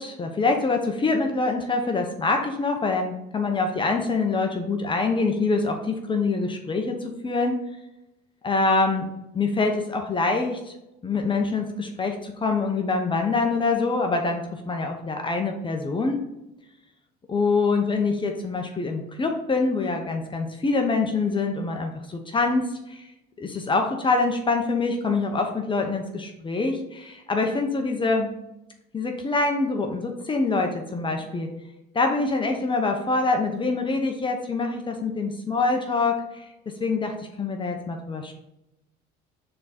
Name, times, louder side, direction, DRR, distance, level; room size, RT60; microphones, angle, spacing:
voice 1, 0.0-7.6 8.4-9.1 9.3-10.7 11.0-16.2 17.3-23.1 23.4-28.3 28.9-31.5 31.9-36.5 36.8-38.3, left 3 dB, 25° left, 4 dB, 0.9 m, -25 dB
6.8 x 3.8 x 4.3 m, 0.90 s
supercardioid pair, 90°, 19 cm